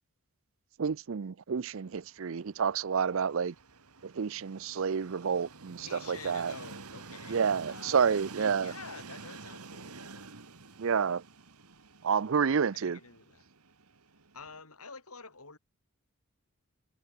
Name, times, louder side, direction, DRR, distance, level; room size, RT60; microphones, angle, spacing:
voice 1, 0.8-3.5 4.0-6.5 7.3-8.7 10.8-11.2 12.0-13.0, right 6 dB, 60° right, 0.5 m, -29 dB
Train, 1.7-14.6, right 4 dB, 85° right, 2.1 m, -49 dB
voice 2, 5.8-10.3 12.7-13.5 14.3-15.6, left 4 dB, 80° left, 7.0 m, -49 dB
head